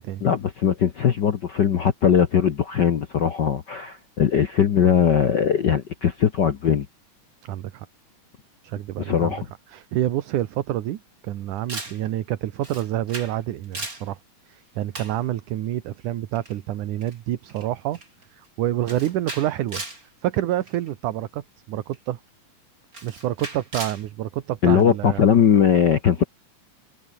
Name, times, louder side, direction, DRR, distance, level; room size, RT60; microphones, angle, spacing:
voice 1, 0.2-6.9 9.0-9.4 24.6-26.2, left 8 dB, 65° left, 1.0 m, -20 dB
voice 2, 7.4-7.9 8.6-9.4 9.7-14.2 14.4-18.0 18.3-19.8 20.2-22.2 23.0-25.2 26.2-26.3, right 13 dB, 75° right, 2.7 m, -28 dB
Camera, 11.7-12.0 12.6-13.4 13.6-14.1 14.9-15.2 16.4-16.6 17.0-17.1 17.5-17.7 17.9-18.2 18.9-20.0 20.7-20.9 21.9-22.0 22.9-24.0, right 2 dB, 25° right, 6.2 m, -36 dB
omnidirectional pair, 3.7 m